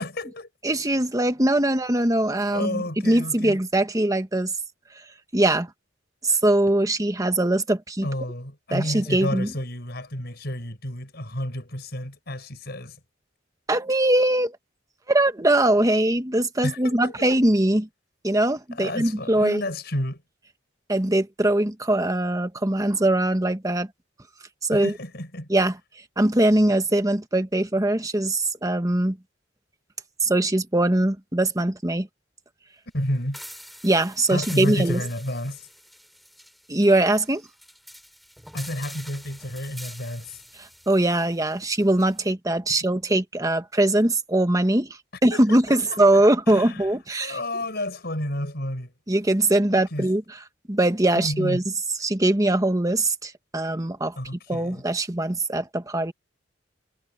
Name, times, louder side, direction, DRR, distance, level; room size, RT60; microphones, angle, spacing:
voice 1, 0.0-0.5 2.5-3.6 8.0-13.0 16.6-17.1 18.7-20.2 24.7-25.5 32.9-33.4 34.3-35.7 38.5-40.4 45.3-46.9 47.2-48.9 49.7-50.1 51.1-51.6 54.2-54.8, left 1 dB, 55° left, 7.1 m, -31 dB
voice 2, 0.6-4.5 5.3-5.7 6.2-8.1 8.7-9.5 13.7-14.6 15.1-17.9 18.2-19.6 20.9-23.9 24.6-24.9 25.5-25.8 26.2-29.2 30.2-32.1 33.8-35.0 36.7-37.5 40.6-47.4 49.1-50.4 50.7-51.6 52.0-54.2 54.5-56.1, right 1 dB, 20° right, 1.5 m, -22 dB
sound 1, 33.3-42.2, equal, ahead, 5.8 m, -45 dB
head